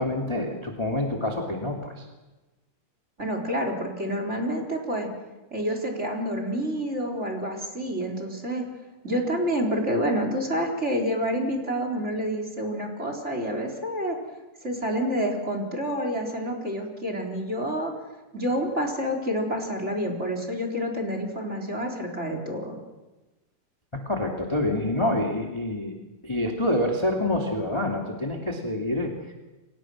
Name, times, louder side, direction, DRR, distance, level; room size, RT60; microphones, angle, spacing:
voice 1, 0.0-2.1 24.1-25.9 26.2-29.3, left 1 dB, 10° left, 0 dB, 1.9 m, -27 dB
voice 2, 3.2-5.1 5.5-8.7 9.0-14.2 14.6-17.9 18.3-22.8, equal, 20° right, 3 dB, 3.9 m, -28 dB
30.0 x 25.0 x 6.3 m, 1.1 s
omnidirectional pair, 4.4 m